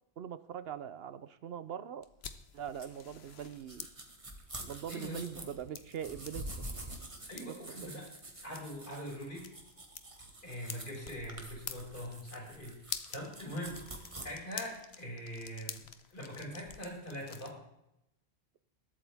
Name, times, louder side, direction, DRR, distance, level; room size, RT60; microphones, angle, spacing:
voice 1, 0.2-2.1 2.5-3.9 4.6-6.5 7.4-8.1, right 9 dB, 70° right, 14 dB, 0.9 m, -42 dB
sound 1, 2.0-17.5, left 7 dB, 75° left, 1.2 m, -49 dB
sound 2, 2.8-14.2, right 1 dB, 30° right, 1.8 m, -47 dB
voice 2, 4.9-5.4 7.3-8.0 8.4-9.5 10.4-15.8 16.1-17.6, equal, 50° left, -3 dB, 5.8 m, -43 dB
20.5 x 8.6 x 3.5 m, 0.83 s
omnidirectional pair, 1.1 m